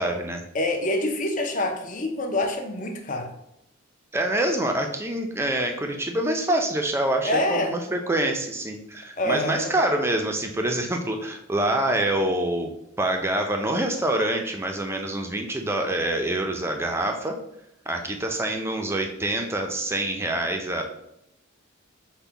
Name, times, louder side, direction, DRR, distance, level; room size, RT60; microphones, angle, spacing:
voice 1, 0.0-0.5 4.1-12.7 13.0-17.4 17.9-20.8, right 1 dB, 10° right, 3 dB, 0.4 m, -26 dB
voice 2, 0.5-3.3 7.2-7.7 9.2-9.7, left 1 dB, 35° left, 4 dB, 0.6 m, -26 dB
5.3 x 2.2 x 4.4 m, 0.81 s
head